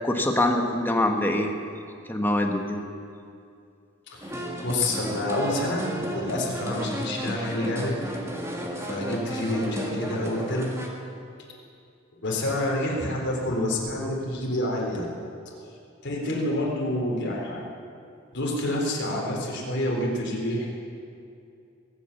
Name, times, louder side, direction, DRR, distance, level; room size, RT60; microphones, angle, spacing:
voice 1, 0.0-1.5 2.1-2.8, left 1 dB, 10° left, 3 dB, 1.4 m, -24 dB
voice 2, 4.1-8.0 8.8-10.8 12.2-15.1 15.6-15.7 16.0-17.6 18.3-20.7, left 1 dB, 60° left, -3 dB, 3.8 m, -28 dB
sound 1, 4.2-10.9, equal, 15° right, 1.8 m, -33 dB
22.0 x 8.6 x 7.1 m, 2.5 s
head